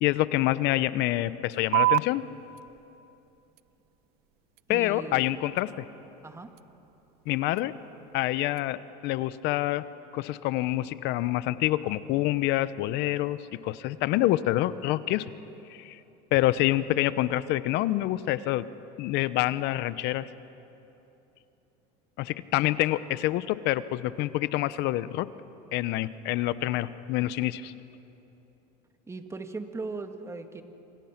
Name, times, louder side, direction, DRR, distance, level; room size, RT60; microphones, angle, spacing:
voice 1, 0.0-2.2 4.7-5.9 7.3-7.7 8.1-8.8 9.0-9.8 10.1-13.4 13.6-15.2 15.7-16.0 16.3-18.7 19.0-20.3 22.2-25.3 25.7-27.7, left 16 dB, 60° left, 15 dB, 1.0 m, -27 dB
sound 1, 1.7-8.7, right 19 dB, 55° right, 0.4 m, -34 dB
voice 2, 4.7-5.4 6.2-6.5 29.1-30.6, right 3 dB, 15° right, 7 dB, 1.8 m, -38 dB
27.0 x 26.0 x 6.0 m, 2.9 s
supercardioid pair, 110°, 20 cm